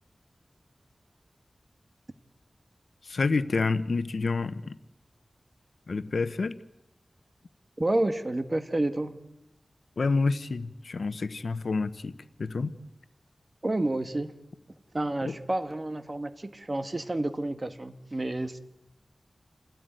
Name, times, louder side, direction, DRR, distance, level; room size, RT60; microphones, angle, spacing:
voice 1, 3.1-4.8 5.9-6.6 10.0-12.1 12.4-12.7 15.2-15.3, left 4 dB, 80° left, 13 dB, 1.0 m, -28 dB
voice 2, 7.8-9.2 13.6-14.3 14.9-18.6, right 1 dB, 35° right, 9 dB, 1.7 m, -29 dB
28.0 x 17.0 x 9.2 m, 0.93 s
wide cardioid pair, 70°, 0 cm